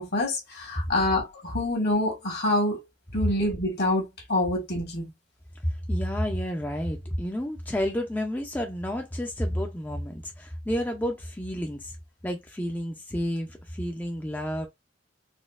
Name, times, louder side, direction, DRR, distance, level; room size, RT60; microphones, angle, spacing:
voice 1, 0.0-2.8 3.1-5.1, left 1 dB, 60° left, 1.5 m, -26 dB
voice 2, 5.6-12.0 12.2-14.7, equal, 10° left, 0.4 m, -30 dB
4.1 x 2.4 x 2.4 m
head